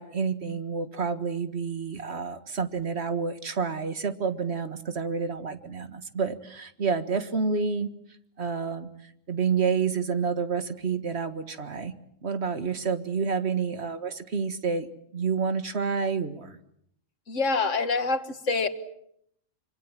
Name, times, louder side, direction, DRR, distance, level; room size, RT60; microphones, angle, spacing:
voice 1, 0.0-7.9 8.4-8.9 9.3-11.9 12.2-14.9 15.1-16.6, right 5 dB, 55° right, 10 dB, 1.9 m, -29 dB
voice 2, 17.3-18.7, left 4 dB, 75° left, 9 dB, 2.0 m, -26 dB
26.0 x 25.5 x 7.5 m, 0.72 s
omnidirectional pair, 1.3 m